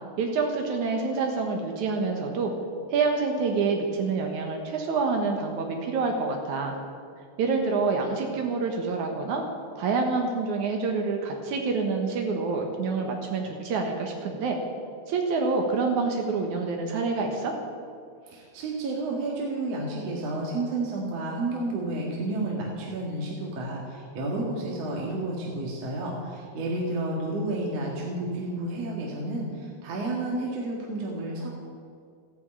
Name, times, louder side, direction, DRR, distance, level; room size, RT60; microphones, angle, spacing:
voice 1, 0.2-2.5 2.9-6.8 7.4-9.4 9.8-14.6 15.1-17.5, right 4 dB, 80° right, 2 dB, 2.8 m, -27 dB
voice 2, 18.2-31.5, right 2 dB, 60° right, -3 dB, 3.0 m, -31 dB
14.5 x 11.0 x 8.8 m, 2.2 s
omnidirectional pair, 3.4 m